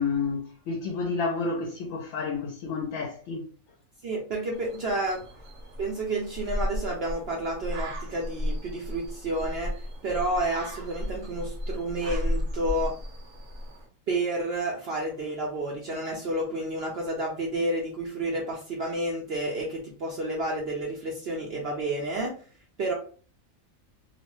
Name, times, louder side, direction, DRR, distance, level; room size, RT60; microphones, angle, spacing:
voice 1, 0.0-3.4, left 4 dB, 70° left, 0.9 m, -30 dB
voice 2, 4.0-5.2 5.8-9.7 10.0-12.9 14.1-22.3 22.8-22.9, right 1 dB, 60° right, 0.7 m, -30 dB
sound 1, 4.5-13.9, left 1 dB, 75° right, 1.1 m, -34 dB
2.8 x 2.1 x 2.9 m
omnidirectional pair, 1.4 m